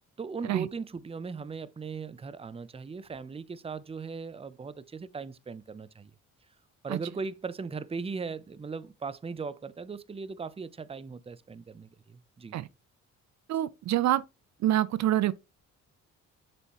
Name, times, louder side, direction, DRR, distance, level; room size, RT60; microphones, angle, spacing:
voice 1, 0.2-6.1 6.8-12.6, right 5 dB, 20° right, 0.6 m, -38 dB
voice 2, 13.5-14.2 14.6-15.3, right 13 dB, 65° right, 0.5 m, -26 dB
6.9 x 6.8 x 3.0 m
cardioid pair, 90°, 30 cm